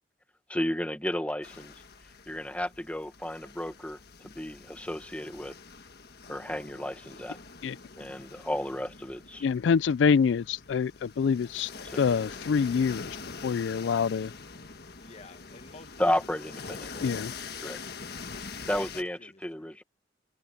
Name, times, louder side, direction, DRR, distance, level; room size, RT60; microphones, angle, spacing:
voice 1, 0.5-1.7 2.3-4.0 4.2-5.5 6.3-7.4 8.0-9.5 11.9-12.0 16.0-17.0 17.6-17.8 18.7-19.8, left 1 dB, 10° left, 1.3 m, -32 dB
sound 1, 1.4-19.0, left 4 dB, 60° left, 1.5 m, -44 dB
voice 2, 9.4-13.2 13.4-14.3 17.0-17.5, left 6 dB, 80° left, 0.4 m, -26 dB
voice 3, 15.0-16.1 16.5-17.0 17.6-17.8 18.7-19.8, left 2 dB, 35° left, 1.8 m, -51 dB
head